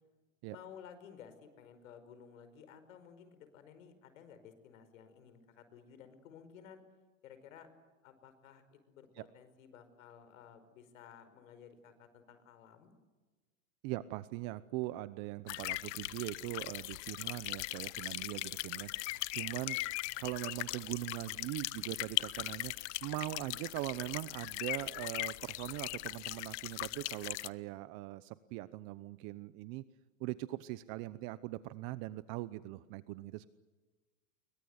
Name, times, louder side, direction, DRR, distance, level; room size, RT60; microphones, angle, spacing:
voice 1, 0.5-6.8 7.2-7.7 8.0-12.9, left 8 dB, 80° left, 11 dB, 5.3 m, -55 dB
voice 2, 13.8-29.8 30.2-33.5, right 18 dB, 45° right, 15 dB, 0.9 m, -41 dB
sound 1, 15.5-27.5, left 20 dB, 60° left, 1.0 m, -39 dB
29.0 x 23.5 x 8.1 m, 1.3 s
supercardioid pair, 140°, 39 cm